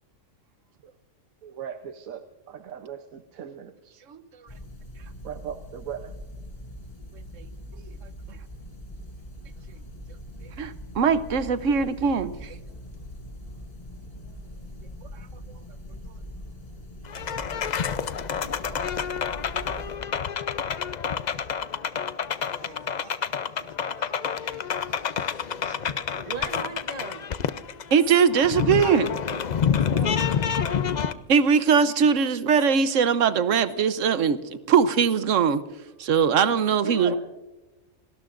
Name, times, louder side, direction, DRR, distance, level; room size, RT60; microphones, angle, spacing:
voice 1, 1.4-4.0 5.2-6.1, right 8 dB, 85° right, 7 dB, 1.3 m, -39 dB
sound 1, 4.5-20.0, equal, 30° left, 2.2 m, -42 dB
voice 2, 10.6-12.5 19.3-19.4 22.7-23.2 24.4-24.5 25.7-25.8 27.9-29.2 31.3-34.4 34.7-35.6 36.0-37.2, right 6 dB, 70° right, 13 dB, 1.2 m, -21 dB
sound 2, 17.0-31.1, left 7 dB, 50° left, 0.5 m, -28 dB
voice 3, 26.1-27.3 29.6-30.3 36.8-37.2, right 4 dB, 35° right, 3 dB, 1.0 m, -36 dB
29.0 x 19.5 x 2.5 m, 1.1 s
omnidirectional pair, 1.4 m